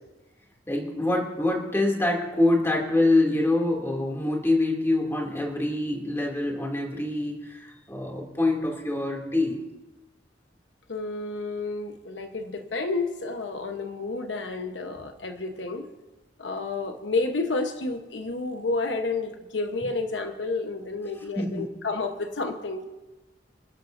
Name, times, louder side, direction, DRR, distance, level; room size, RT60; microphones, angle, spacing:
voice 1, 0.7-9.6 21.4-21.7, left 2 dB, 15° left, -1 dB, 2.6 m, -25 dB
voice 2, 10.9-15.9 16.4-22.8, left 3 dB, 80° left, 5 dB, 1.1 m, -30 dB
27.5 x 12.0 x 2.7 m, 1.1 s
head